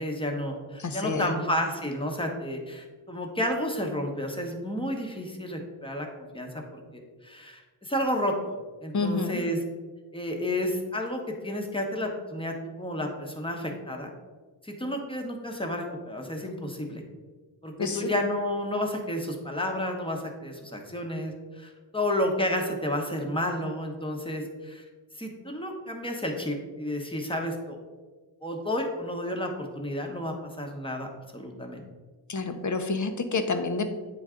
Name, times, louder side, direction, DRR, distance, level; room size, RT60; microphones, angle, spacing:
voice 1, 0.0-8.5 8.8-9.6 10.1-14.1 14.6-17.0 17.6-24.8 25.1-27.8 28.4-31.8, left 1 dB, 10° left, 2 dB, 1.1 m, -31 dB
voice 2, 0.8-1.4 8.9-9.4 17.8-18.1 32.3-33.8, left 3 dB, 40° left, 7 dB, 0.8 m, -28 dB
9.1 x 3.9 x 3.7 m, 1.4 s
wide cardioid pair, 100°, 46 cm